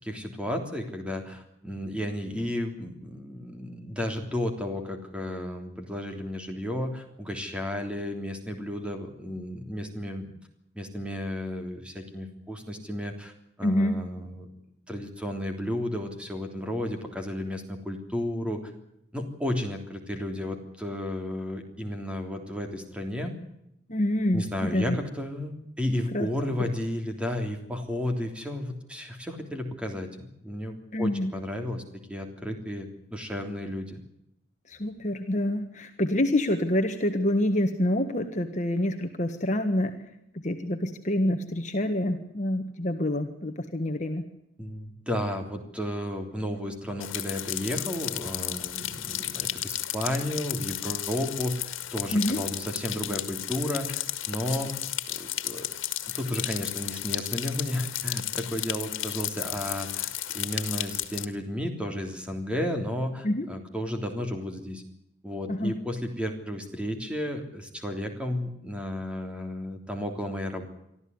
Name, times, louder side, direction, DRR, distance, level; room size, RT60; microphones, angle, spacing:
voice 1, 0.0-10.3 10.7-13.3 13.6-14.5 14.9-18.6 19.1-23.3 24.3-31.8 32.1-34.0 44.6-54.7 55.1-55.7 56.1-64.8 65.2-70.7, left 1 dB, 5° right, 4 dB, 3.3 m, -33 dB
voice 2, 13.6-14.0 23.9-24.9 26.1-26.3 30.9-31.3 34.7-40.0 40.4-44.2 52.1-52.4 63.2-63.5 65.5-65.8, left 1 dB, 35° left, 5 dB, 1.6 m, -27 dB
sound 1, 47.0-61.3, left 13 dB, 90° left, 1.8 m, -33 dB
24.5 x 14.0 x 9.7 m, 0.79 s
head